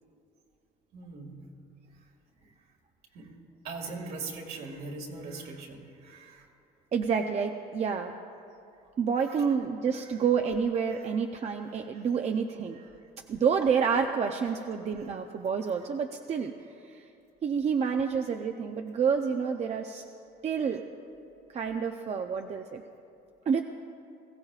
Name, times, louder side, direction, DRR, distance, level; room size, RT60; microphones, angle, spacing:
voice 1, 0.9-1.5 2.4-2.5 3.1-3.3 3.6-6.5 9.9-10.1 11.0-11.1 12.7-12.8, right 3 dB, 65° right, 1 dB, 2.1 m, -41 dB
voice 2, 6.9-8.1 9.0-12.8 13.3-16.5 16.9-17.0 17.4-20.0 20.4-20.8 21.5-22.8 23.5-23.6, right 6 dB, 40° right, 4 dB, 0.6 m, -28 dB
21.5 x 15.5 x 2.4 m, 2.6 s
cardioid pair, 110°, 17 cm